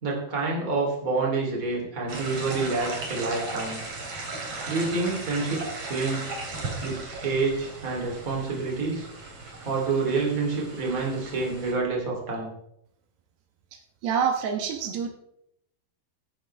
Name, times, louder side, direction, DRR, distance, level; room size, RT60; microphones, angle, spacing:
voice 1, 0.0-3.8 4.7-6.3 6.8-9.1 9.6-12.5, right 3 dB, 20° right, -2 dB, 3.2 m, -28 dB
sound 1, 2.1-11.7, right 3 dB, 40° right, 3.3 m, -37 dB
voice 2, 14.0-15.1, right 7 dB, 80° right, 4 dB, 3.2 m, -26 dB
16.0 x 10.5 x 3.4 m, 0.77 s
omnidirectional pair, 4.7 m